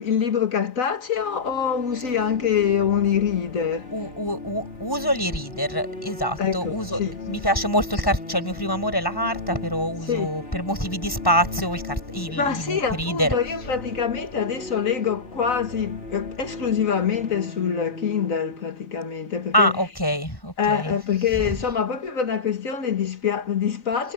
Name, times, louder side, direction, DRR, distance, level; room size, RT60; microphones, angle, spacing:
voice 1, 0.0-3.9 6.4-7.2 7.9-8.0 10.1-10.3 12.3-19.9 20.6-24.1, left 7 dB, 85° left, 2.3 m, -25 dB
sound 1, 1.2-19.8, left 3 dB, 50° left, 4.1 m, -37 dB
voice 2, 3.9-7.0 7.3-13.4 19.5-21.0, equal, 15° left, 7.9 m, -25 dB
omnidirectional pair, 1.4 m